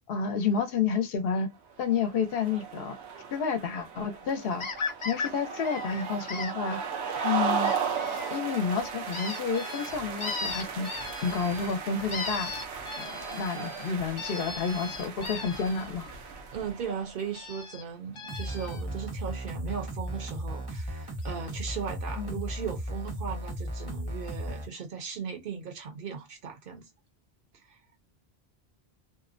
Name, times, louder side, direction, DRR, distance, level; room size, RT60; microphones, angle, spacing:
voice 1, 0.1-1.5 1.8-2.9 3.3-4.7 5.0-6.8 7.2-7.7 8.3-10.9 11.2-12.5 13.0-16.1 22.2-22.4, left 5 dB, 70° left, 0.8 m, -30 dB
sound 1, 1.8-17.4, right 6 dB, 90° right, 0.9 m, -36 dB
sound 2, 4.6-5.3 5.6-6.5 7.6-8.3 9.1-11.8 12.1-15.9 17.3-17.8 18.2-18.8 20.8-20.9 21.2-21.3 21.6-21.7, left 4 dB, 50° left, 0.4 m, -37 dB
voice 2, 16.5-26.9 27.6-27.8, right 6 dB, 60° right, 0.8 m, -37 dB
sound 3, 18.3-24.7, right 1 dB, 25° right, 0.6 m, -36 dB
2.6 x 2.0 x 2.4 m
omnidirectional pair, 1.1 m